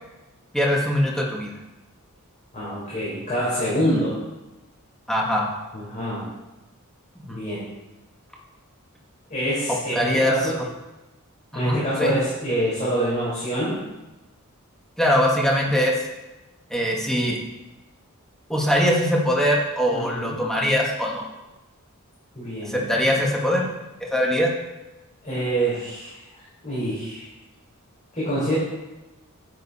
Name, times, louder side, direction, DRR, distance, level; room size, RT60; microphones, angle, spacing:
voice 1, 0.5-1.5 5.1-5.5 7.2-7.4 9.7-10.3 11.5-12.1 15.0-15.9 16.7-17.4 18.5-21.2 22.6-23.7 24.0-24.5, equal, ahead, -2 dB, 1.8 m, -22 dB
voice 2, 2.5-4.2 5.7-6.2 7.3-7.6 9.3-10.6 11.5-13.8 19.9-20.4 22.3-22.8 25.2-26.1 26.6-27.3 28.1-28.5, right 1 dB, 35° left, -9 dB, 4.7 m, -26 dB
12.0 x 9.4 x 4.3 m, 1.0 s
head